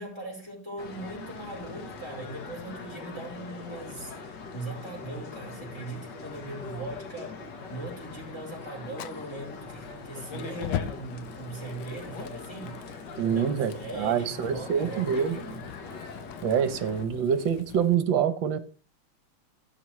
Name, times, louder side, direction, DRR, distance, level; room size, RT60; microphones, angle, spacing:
voice 1, 0.0-4.1 4.5-12.9 13.3-15.6, right 2 dB, 10° left, 4.9 m, -40 dB
sound 1, 0.8-17.0, left 4 dB, 60° left, 1.8 m, -42 dB
Fire, 8.9-17.9, left 10 dB, 80° left, 1.4 m, -41 dB
voice 2, 13.2-15.4 16.4-18.6, right 8 dB, 70° right, 1.6 m, -26 dB
16.0 x 7.2 x 3.1 m
omnidirectional pair, 2.3 m